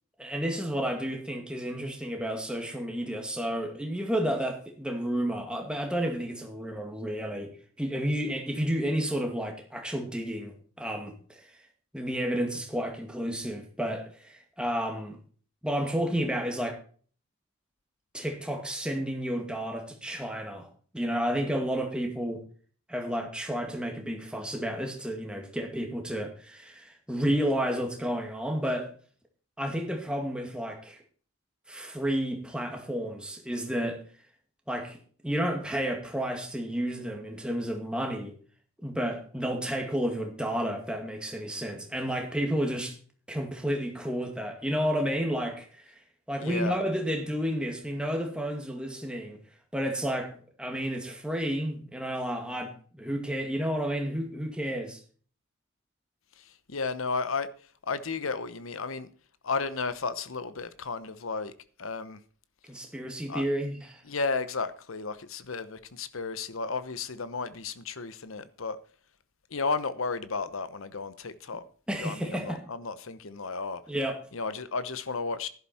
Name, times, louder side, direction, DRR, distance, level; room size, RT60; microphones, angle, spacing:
voice 1, 0.2-11.5 11.9-15.2 15.6-16.8 18.1-20.7 20.9-22.4 22.9-28.9 29.6-31.0 31.7-34.0 34.7-35.0 35.2-38.4 38.8-42.9 43.3-46.0 46.3-49.4 49.7-55.0 62.7-64.0 71.9-72.6 73.9-74.2, equal, 5° right, 2.1 m, -31 dB
voice 2, 46.4-46.8 56.4-57.5 57.8-59.1 59.4-61.5 61.8-62.2 63.3-63.4 64.0-68.8 69.5-71.6 72.0-73.8 74.3-75.5, left 4 dB, 75° left, 0.9 m, -33 dB
11.5 x 11.0 x 4.3 m
head